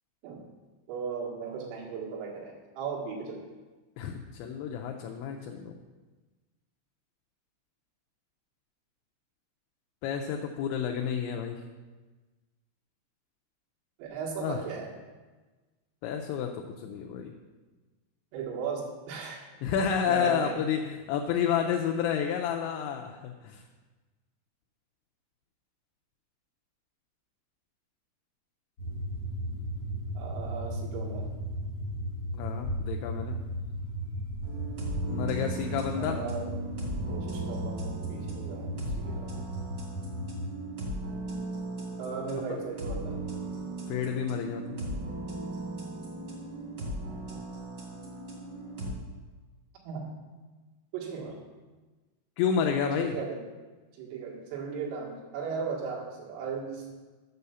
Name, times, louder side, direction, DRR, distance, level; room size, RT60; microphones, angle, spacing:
voice 1, 0.9-3.5 14.0-15.0 18.3-19.4 20.1-20.7 30.2-31.3 36.0-36.6 37.1-39.3 42.0-43.2 49.8-50.1 50.9-51.4 53.0-53.4 54.0-56.9, right 5 dB, 85° right, -2 dB, 4.4 m, -37 dB
voice 2, 4.0-5.7 10.0-11.6 14.4-14.6 16.0-17.3 19.6-23.6 32.3-33.4 35.1-36.2 42.5-42.6 43.9-44.8 52.4-53.2, left 7 dB, 80° left, 3 dB, 2.8 m, -30 dB
sound 1, 28.8-40.5, equal, 45° left, 1.5 m, -35 dB
sound 2, 34.4-48.9, right 2 dB, 50° right, 1.4 m, -38 dB
8.4 x 6.8 x 6.9 m, 1.3 s
omnidirectional pair, 5.7 m